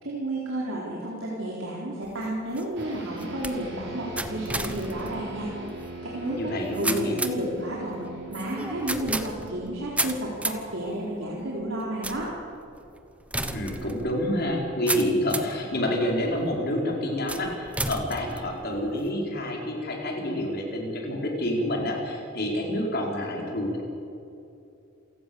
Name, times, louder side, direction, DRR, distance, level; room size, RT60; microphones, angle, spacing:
voice 1, 0.0-5.5 6.0-8.0 8.3-12.3, right 1 dB, 75° right, -4 dB, 4.1 m, -32 dB
sound 1, 2.0-15.6 16.2-16.7 17.3-19.1, right 2 dB, 5° right, 1.1 m, -34 dB
sound 2, 2.8-12.4, right 3 dB, 55° right, 6.0 m, -42 dB
voice 2, 6.3-7.1 13.4-23.8, left 1 dB, 50° left, 0 dB, 4.8 m, -28 dB
28.0 x 16.5 x 7.2 m, 2.7 s
head